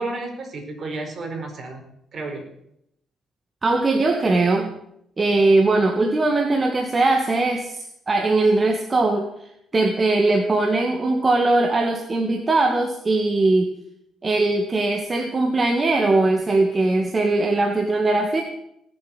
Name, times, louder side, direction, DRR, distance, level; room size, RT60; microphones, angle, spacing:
voice 1, 0.0-1.8 2.1-2.4, right 2 dB, 50° right, 4 dB, 4.6 m, -31 dB
voice 2, 3.6-4.7 5.2-9.3 9.7-13.7 14.2-18.4, right 2 dB, 30° right, 4 dB, 1.8 m, -20 dB
18.5 x 7.6 x 8.1 m, 0.77 s
cardioid pair, 90°, 0 cm